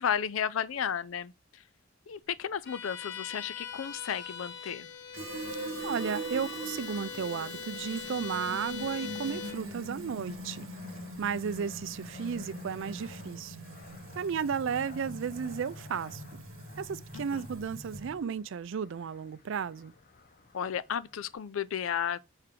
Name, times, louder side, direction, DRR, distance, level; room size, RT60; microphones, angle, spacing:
voice 1, 0.0-1.6 2.1-4.9 17.1-17.5 20.5-22.2, left 8 dB, 80° left, 0.5 m, -33 dB
Bowed string instrument, 2.6-9.7, left 7 dB, 60° left, 1.2 m, -41 dB
Fill (with liquid), 5.1-18.2, right 1 dB, 85° right, 1.2 m, -42 dB
voice 2, 5.8-10.7 11.2-13.6 14.2-16.4 16.8-19.9, right 6 dB, 65° right, 0.4 m, -34 dB
Fixed-wing aircraft airplane, 6.1-21.4, left 4 dB, 45° left, 0.8 m, -55 dB
6.7 x 4.4 x 3.7 m
head